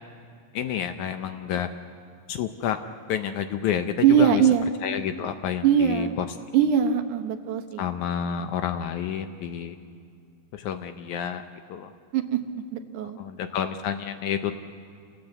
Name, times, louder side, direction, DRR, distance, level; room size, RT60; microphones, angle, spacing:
voice 1, 0.5-1.7 2.3-2.8 3.1-4.4 4.8-6.3 7.8-9.8 10.5-11.4 11.7-11.9 13.2-14.5, left 9 dB, 75° left, 8 dB, 1.9 m, -29 dB
voice 2, 4.0-4.7 5.6-6.2 6.5-7.8 12.1-12.4 12.7-13.2, right 8 dB, 70° right, 7 dB, 2.4 m, -21 dB
29.0 x 18.0 x 8.0 m, 2.3 s
omnidirectional pair, 4.0 m